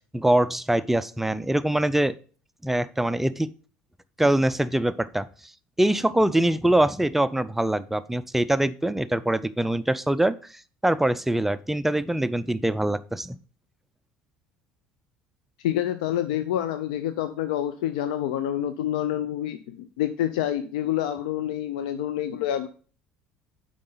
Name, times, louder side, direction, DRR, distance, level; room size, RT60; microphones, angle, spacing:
voice 1, 0.1-2.1 2.6-3.5 4.2-5.3 5.8-10.4 10.8-13.4, right 1 dB, 5° right, 14 dB, 0.4 m, -23 dB
voice 2, 15.6-22.7, left 11 dB, 90° left, 11 dB, 0.4 m, -27 dB
7.6 x 4.9 x 3.8 m, 0.40 s
supercardioid pair, 95°, 4 cm